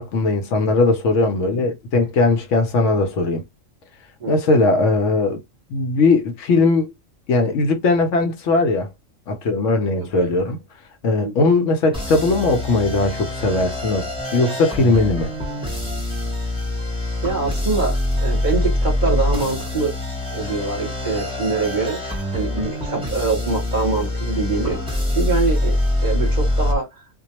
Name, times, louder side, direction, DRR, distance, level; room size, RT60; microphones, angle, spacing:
voice 1, 0.0-3.4 4.3-5.4 5.7-6.9 7.3-8.9 9.3-10.6 11.0-15.3, left 3 dB, 70° left, 0.9 m, -19 dB
voice 2, 4.2-4.6 10.1-10.3 11.2-11.3 17.2-19.9 20.3-26.9, right 3 dB, 40° right, 0.8 m, -24 dB
sound 1, 11.9-26.7, left 1 dB, 5° right, 0.6 m, -24 dB
2.2 x 2.2 x 2.8 m
omnidirectional pair, 1.4 m